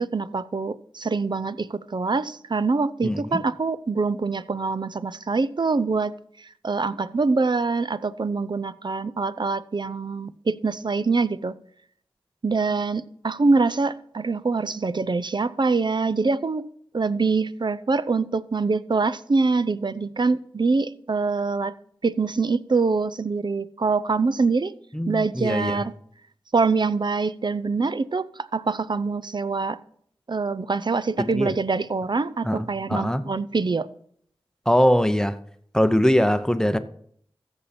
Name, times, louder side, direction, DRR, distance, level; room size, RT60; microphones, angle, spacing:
voice 1, 0.0-6.1 6.6-11.5 12.4-16.7 16.9-21.7 22.0-24.7 25.1-25.9 26.5-28.3 28.5-29.8 30.3-33.9, right 4 dB, 50° right, 0.5 m, -24 dB
voice 2, 3.0-3.4 24.9-25.8 31.2-31.5 32.4-33.2 34.7-35.4 35.7-36.8, equal, 5° left, 0.7 m, -22 dB
14.0 x 7.2 x 4.3 m
cardioid pair, 40°, 10 cm